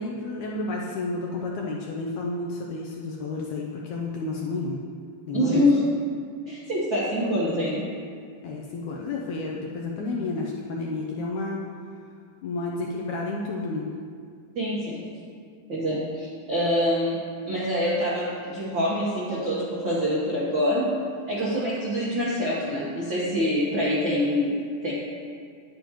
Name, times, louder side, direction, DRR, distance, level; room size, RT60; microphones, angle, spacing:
voice 1, 0.0-4.8 5.3-5.6 8.4-11.6 12.4-13.9, left 3 dB, 75° left, -2 dB, 1.8 m, -31 dB
voice 2, 5.3-5.8 6.5-7.8 14.5-15.0 15.7-17.2 17.5-20.9 21.3-24.6 24.8-24.9, equal, 70° right, -7 dB, 1.1 m, -25 dB
10.0 x 9.1 x 3.0 m, 2.2 s
omnidirectional pair, 4.1 m